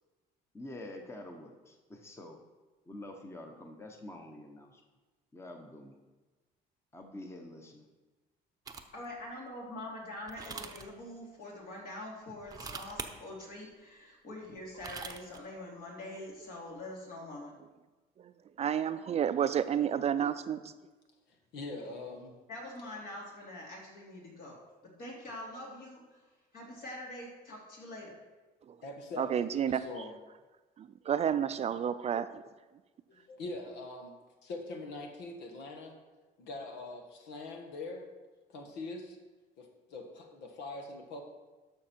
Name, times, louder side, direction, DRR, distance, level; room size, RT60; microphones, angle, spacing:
voice 1, 0.5-2.4 2.8-4.8 5.3-6.0 6.9-7.9, left 1 dB, 15° left, 3 dB, 1.0 m, -47 dB
sound 1, 8.7-9.0 10.3-10.9 12.4-13.1 14.6-15.4, right 4 dB, 20° right, 0.8 m, -42 dB
voice 2, 8.9-17.5 22.5-26.2 26.5-28.1, left 1 dB, 60° left, -2 dB, 3.0 m, -44 dB
voice 3, 18.2-20.7 28.7-28.8 29.2-29.8 30.8-32.5, right 9 dB, 40° right, 12 dB, 0.4 m, -31 dB
voice 4, 21.5-22.3 28.8-30.1 33.1-34.1 34.4-35.9 36.4-38.1 38.5-39.2 39.6-41.2, left 2 dB, 85° left, 3 dB, 1.5 m, -43 dB
12.5 x 6.0 x 4.4 m, 1.2 s
cardioid pair, 110°, 17 cm